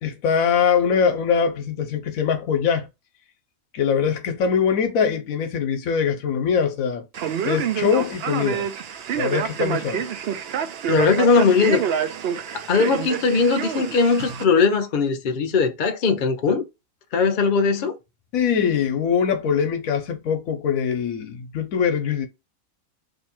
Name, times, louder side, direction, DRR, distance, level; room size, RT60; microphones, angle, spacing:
voice 1, 0.0-2.9 3.7-7.1 7.4-8.7 9.1-10.1 18.3-22.3, left 7 dB, 80° left, 1.2 m, -22 dB
Male speech man speaking, 7.1-14.4, right 8 dB, 60° right, 0.7 m, -27 dB
voice 2, 10.9-11.8 12.7-16.6 17.1-17.9, left 4 dB, 55° left, 0.6 m, -19 dB
2.9 x 2.7 x 4.2 m
omnidirectional pair, 1.4 m